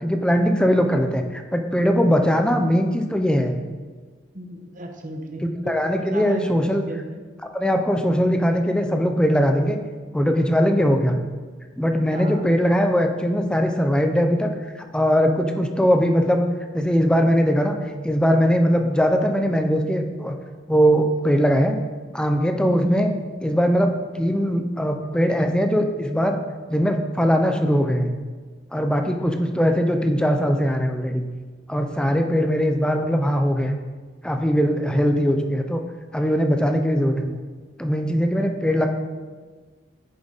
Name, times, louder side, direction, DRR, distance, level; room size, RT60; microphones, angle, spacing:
voice 1, 0.0-3.5 5.7-6.8 7.5-9.8 10.1-11.1 11.8-14.5 14.9-16.5 16.7-17.7 18.0-20.4 20.7-21.8 22.1-23.1 23.4-23.9 24.1-26.4 26.7-28.1 28.7-31.3 31.7-33.7 34.2-35.8 36.1-37.4 37.8-38.9, equal, 5° left, 5 dB, 0.6 m, -20 dB
voice 2, 4.3-7.1 12.1-12.5 22.7-23.3 29.4-29.6, equal, 45° right, 3 dB, 1.1 m, -34 dB
10.5 x 5.2 x 4.1 m, 1.4 s
head